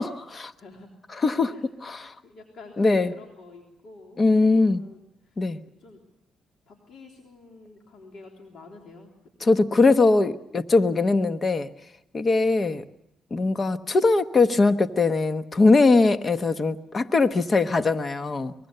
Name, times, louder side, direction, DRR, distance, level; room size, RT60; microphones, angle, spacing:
voice 1, 0.0-0.5 1.2-1.5 1.8-2.1 2.8-3.1 4.2-4.8 5.4-5.6 9.4-11.7 12.1-12.8 13.3-18.5, left 3 dB, 35° left, 11 dB, 1.2 m, -21 dB
voice 2, 0.6-1.7 2.0-6.0 6.7-9.1 9.7-9.8, left 3 dB, 65° left, 1 dB, 3.6 m, -47 dB
24.0 x 21.5 x 6.8 m, 0.80 s
cardioid pair, 90°, 0 cm